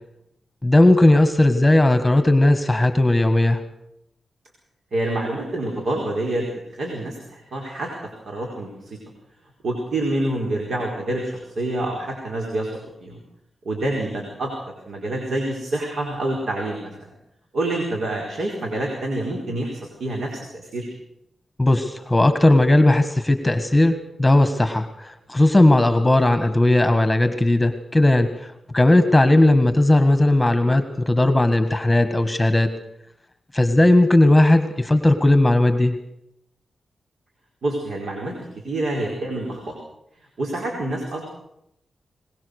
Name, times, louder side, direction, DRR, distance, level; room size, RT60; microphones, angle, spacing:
voice 1, 0.6-3.6 21.6-32.7 33.5-35.9, left 1 dB, 10° left, 9 dB, 1.6 m, -17 dB
voice 2, 4.9-7.9 8.2-9.0 9.6-13.2 13.6-14.5 14.9-16.9 17.5-20.9 37.6-39.7 40.4-41.2, right 1 dB, 70° right, 0 dB, 4.7 m, -27 dB
22.5 x 20.5 x 6.6 m, 0.81 s
cardioid pair, 80°, 0 cm